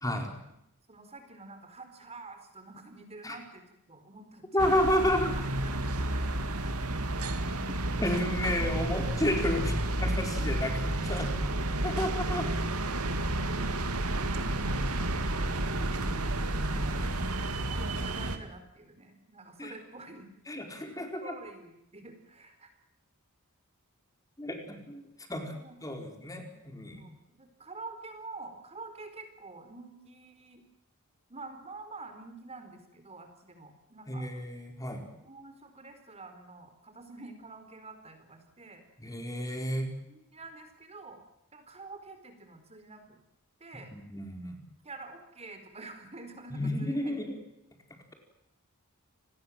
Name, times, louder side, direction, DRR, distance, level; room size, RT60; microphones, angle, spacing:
voice 1, 0.0-0.3 3.2-3.4 4.5-5.3 7.8-11.3 11.8-12.5 19.6-19.7 20.5-21.3 24.4-25.0 25.3-25.5 25.8-27.0 34.1-35.0 39.0-39.9 43.9-44.6 46.5-47.3, left 1 dB, 15° left, 4 dB, 4.7 m, -31 dB
voice 2, 0.9-3.6 3.9-6.3 6.6-6.7 14.1-14.6 17.7-20.3 20.9-22.7 25.5-25.8 26.9-30.6 31.3-34.3 35.1-38.8 40.1-41.2 41.5-43.2 43.6-43.9 44.8-47.2, right 3 dB, 30° right, 7 dB, 4.5 m, -48 dB
sound 1, 4.6-18.4, right 1 dB, 75° right, 2.7 m, -31 dB
30.0 x 20.5 x 7.7 m, 0.82 s
head